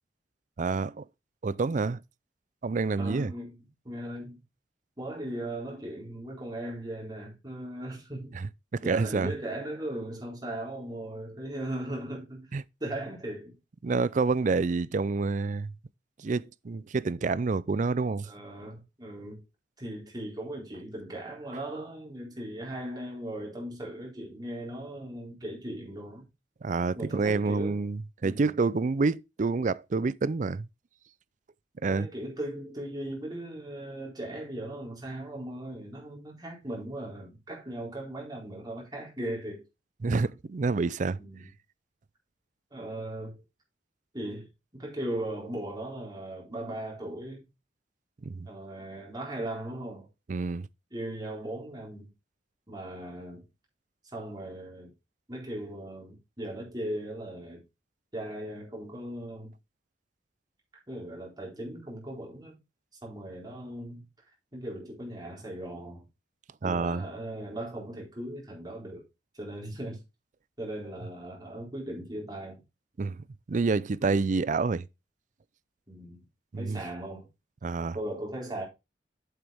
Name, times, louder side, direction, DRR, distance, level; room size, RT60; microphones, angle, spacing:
voice 1, 0.6-1.0 1.4-2.0 2.6-3.3 8.3-9.3 12.5-12.6 13.8-15.7 16.2-18.3 26.6-30.7 31.8-32.1 40.0-41.2 48.3-48.5 50.3-50.7 66.6-67.0 73.0-73.2 73.5-74.9 76.5-76.8 77.6-78.0, right 4 dB, 45° right, 0.4 m, -28 dB
voice 2, 3.0-4.4 5.0-8.4 8.8-12.5 12.8-13.6 18.2-19.4 19.8-26.3 27.0-27.8 28.2-28.5 31.9-39.6 41.2-41.5 42.7-43.4 44.1-47.4 48.5-50.1 50.9-52.1 52.7-53.5 54.1-54.9 55.3-57.6 58.1-59.5 60.9-62.6 63.0-64.0 64.5-66.0 66.6-69.0 69.3-70.0 70.6-72.6 75.9-76.3 76.6-77.3 77.9-78.6, right 1 dB, 20° right, 4.2 m, -38 dB
8.1 x 7.8 x 3.5 m
head